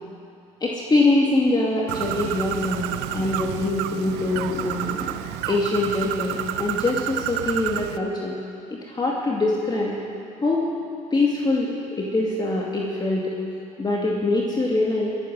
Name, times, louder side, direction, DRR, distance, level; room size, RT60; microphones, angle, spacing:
voice 1, 0.6-8.4 8.9-10.0 10.4-10.6 11.1-13.3 13.8-15.1, left 2 dB, 25° left, -3 dB, 2.3 m, -23 dB
Bird, 1.9-8.0, right 13 dB, 75° right, 0.6 m, -30 dB
22.0 x 9.0 x 6.3 m, 2.6 s
hypercardioid pair, 65°, 17 cm